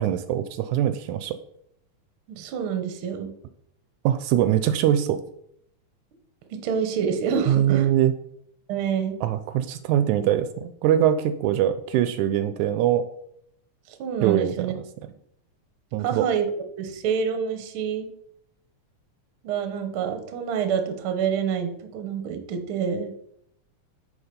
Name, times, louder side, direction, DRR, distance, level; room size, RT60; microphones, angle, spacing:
voice 1, 0.0-1.4 4.1-5.2 7.5-8.1 9.2-13.0 14.2-14.5 15.9-16.3, right 11 dB, 80° right, 11 dB, 1.9 m, -22 dB
voice 2, 2.3-3.3 6.5-7.9 8.7-9.2 10.2-10.3 13.9-14.7 16.0-16.5 16.8-18.1 19.4-23.3, right 7 dB, 65° right, 7 dB, 1.4 m, -27 dB
9.9 x 4.1 x 5.1 m, 0.73 s
omnidirectional pair, 3.5 m